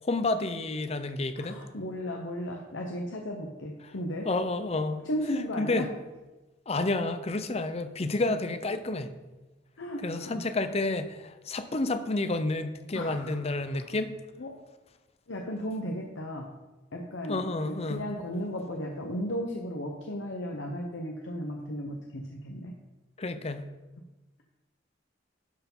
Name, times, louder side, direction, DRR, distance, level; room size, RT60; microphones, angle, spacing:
voice 1, 0.0-1.6 4.2-5.0 5.6-5.9 6.7-9.1 10.0-14.1 17.3-18.0 23.2-23.7, left 2 dB, 35° left, 10 dB, 0.6 m, -30 dB
voice 2, 1.3-4.3 5.0-5.9 9.8-10.4 12.9-13.9 14.4-14.5 15.3-16.5 16.9-22.7, equal, 85° left, 1 dB, 1.0 m, -35 dB
11.5 x 4.6 x 5.5 m, 1.1 s
head